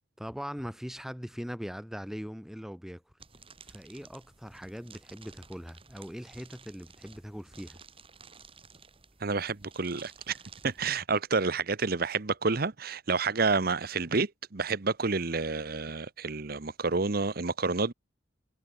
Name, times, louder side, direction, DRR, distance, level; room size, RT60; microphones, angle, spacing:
voice 1, 0.2-3.0 3.7-7.8, equal, ahead, 1.3 m, -41 dB
sound 1, 3.2-11.0, right 5 dB, 30° right, 4.2 m, -54 dB
voice 2, 9.2-10.4 10.6-17.9, right 4 dB, 50° right, 1.0 m, -29 dB
head